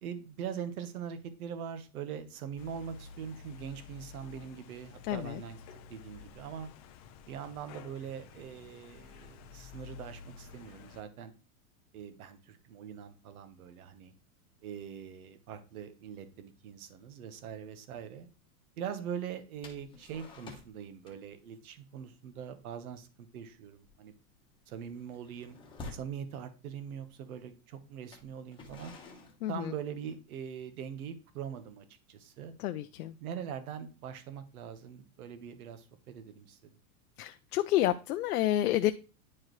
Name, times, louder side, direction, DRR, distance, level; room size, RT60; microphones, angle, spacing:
voice 1, 0.0-6.7 7.3-11.3 11.9-14.1 14.6-18.3 18.8-24.1 24.7-25.6 25.9-28.9 29.5-32.5 33.2-36.7, right 8 dB, 75° right, 10 dB, 1.3 m, -42 dB
sound 1, 2.6-11.0, left 6 dB, 30° left, 0.4 m, -51 dB
voice 2, 5.1-5.4 29.4-29.7 32.6-33.2 37.2-38.9, left 13 dB, 90° left, 8 dB, 0.6 m, -29 dB
sound 2, 19.6-20.8 21.0-21.4 21.7-21.9 22.3-22.6 22.8-23.1 23.5-26.2 27.0-27.1 28.0-30.3, left 3 dB, 10° left, 1.1 m, -50 dB
9.8 x 4.8 x 3.1 m, 0.33 s
supercardioid pair, 160°, 44 cm